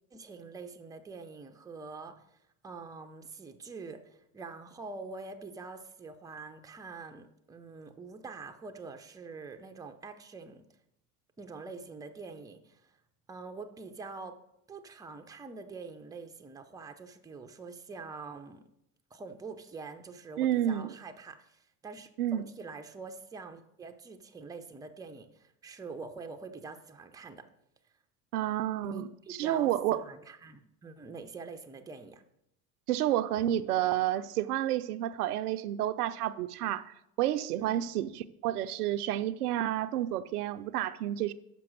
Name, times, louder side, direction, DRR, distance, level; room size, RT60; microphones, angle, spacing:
voice 1, 0.1-2.4 2.6-10.6 11.4-12.9 13.3-14.4 14.7-18.7 19.1-27.5 28.8-32.2 37.6-37.8, right 4 dB, 10° right, 0.5 m, -45 dB
voice 2, 20.4-20.9 22.2-22.4 28.3-29.1 29.4-30.0 32.9-41.3, right 12 dB, 85° right, 0.6 m, -30 dB
6.0 x 5.7 x 6.1 m
hypercardioid pair, 90°, 44 cm